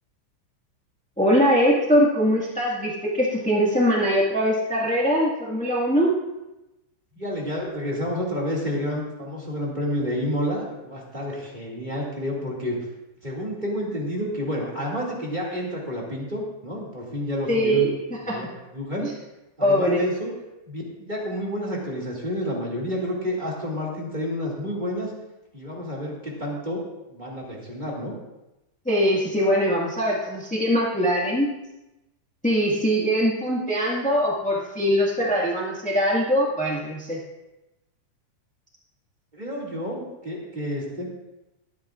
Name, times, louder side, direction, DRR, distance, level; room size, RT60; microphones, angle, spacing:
voice 1, 1.2-6.1 17.5-17.9 18.3-18.4 19.0-19.1 19.6-20.0 28.8-31.5 32.4-37.2, equal, 10° left, -4 dB, 0.4 m, -22 dB
voice 2, 7.1-12.8 13.2-17.9 18.2-18.5 18.7-19.1 19.6-20.3 20.7-25.1 25.5-26.8 27.1-28.1 39.3-41.1, equal, 15° right, -4 dB, 1.9 m, -29 dB
22.5 x 8.7 x 2.5 m, 0.98 s
omnidirectional pair, 3.6 m